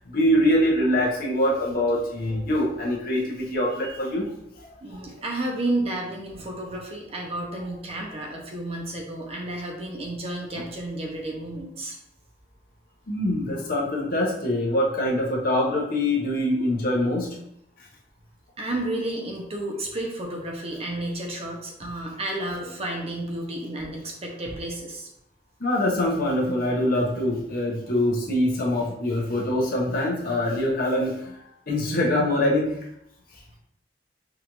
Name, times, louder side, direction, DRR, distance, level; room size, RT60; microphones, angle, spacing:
voice 1, 0.0-4.3 13.1-17.3 25.6-31.4 31.7-32.8, left 1 dB, 50° left, -3 dB, 1.0 m, -24 dB
voice 2, 4.8-12.0 18.6-25.1, right 1 dB, 35° right, 0 dB, 0.7 m, -31 dB
5.0 x 2.5 x 3.0 m, 0.76 s
head